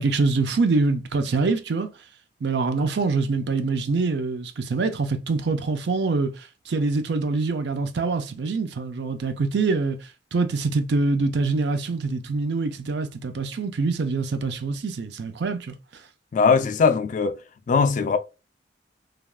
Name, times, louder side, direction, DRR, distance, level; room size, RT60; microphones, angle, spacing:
voice 1, 0.0-1.9 2.4-10.0 10.3-15.7, right 3 dB, 70° right, 0.5 m, -25 dB
voice 2, 16.3-17.4 17.7-18.2, left 5 dB, 45° left, 0.3 m, -20 dB
3.3 x 2.4 x 2.3 m
head